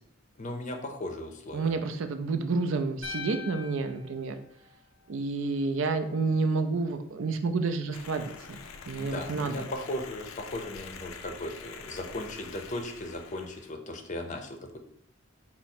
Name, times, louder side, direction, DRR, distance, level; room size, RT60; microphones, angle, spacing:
voice 1, 0.4-1.7 9.0-14.8, left 1 dB, 35° left, 4 dB, 0.5 m, -37 dB
voice 2, 1.5-4.4 5.1-8.6 8.9-9.7, right 4 dB, 65° right, 8 dB, 0.4 m, -29 dB
sound 1, 3.0-5.3, left 5 dB, 10° right, 0.9 m, -42 dB
sound 2, 7.9-13.7, left 5 dB, 85° left, 0.4 m, -45 dB
4.7 x 2.0 x 4.2 m, 0.67 s
head